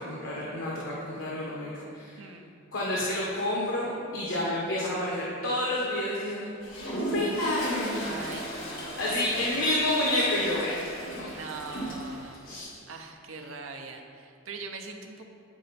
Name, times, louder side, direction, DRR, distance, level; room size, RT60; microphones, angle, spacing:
voice 1, 0.0-2.2 2.7-6.5 7.1-8.0 9.0-11.4 12.4-12.7, left 1 dB, 90° left, -5 dB, 1.1 m, -29 dB
voice 2, 2.2-2.6 8.0-9.7 11.2-12.4 12.9-15.3, right 4 dB, 90° right, 4 dB, 0.7 m, -42 dB
Toilet flush, 6.6-12.4, equal, 75° left, 1.5 m, -36 dB
8.9 x 4.3 x 4.1 m, 2.4 s
head